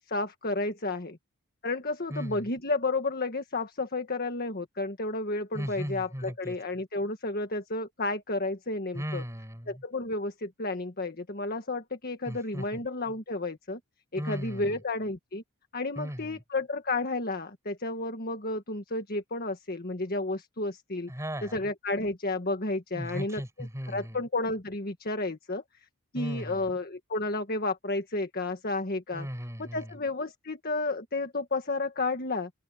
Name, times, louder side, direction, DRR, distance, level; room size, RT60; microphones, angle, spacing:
voice 1, 0.1-1.2 1.6-9.2 9.7-13.8 14.1-15.4 15.7-21.1 21.4-25.6 26.1-29.3 29.6-32.5, left 2 dB, 45° left, 1.7 m, -32 dB
voice 2, 2.1-2.5 5.5-6.5 8.9-9.8 12.2-12.8 14.2-14.8 16.0-16.4 21.1-21.6 22.9-24.2 26.1-26.6 29.1-29.9, equal, 15° right, 6.4 m, -37 dB
open air
head